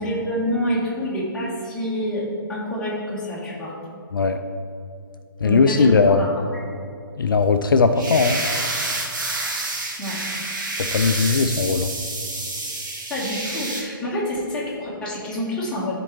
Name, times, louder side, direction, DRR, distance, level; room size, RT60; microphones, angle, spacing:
voice 1, 0.0-2.2 2.5-3.7 5.4-6.4 10.0-10.2 13.1-15.9, equal, 5° left, -7 dB, 1.4 m, -27 dB
voice 2, 5.4-6.2 7.2-8.4 10.9-11.9, left 4 dB, 65° left, 7 dB, 0.4 m, -18 dB
sound 1, 8.0-13.8, right 2 dB, 55° right, 1.4 m, -28 dB
12.0 x 4.4 x 3.2 m, 2.4 s
figure-of-eight pair, 130°, 12 cm